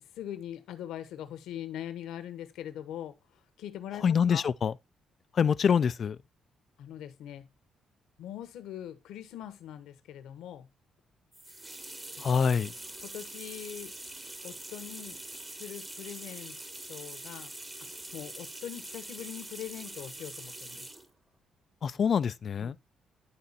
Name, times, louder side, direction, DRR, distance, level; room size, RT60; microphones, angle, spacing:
voice 1, 0.1-3.2 3.6-4.4 6.8-7.5 8.2-10.7 12.2-12.4 13.0-13.9 14.4-15.2 15.6-16.6 16.9-17.5 17.9-20.9 22.6-22.7, left 11 dB, 85° left, 1.2 m, -42 dB
voice 2, 3.9-4.8 5.3-6.2 12.2-12.7 21.8-22.8, left 7 dB, 50° left, 0.4 m, -26 dB
sound 1, 11.3-21.1, right 2 dB, 20° right, 1.3 m, -44 dB
11.5 x 3.9 x 4.1 m
cardioid pair, 90°, 0 cm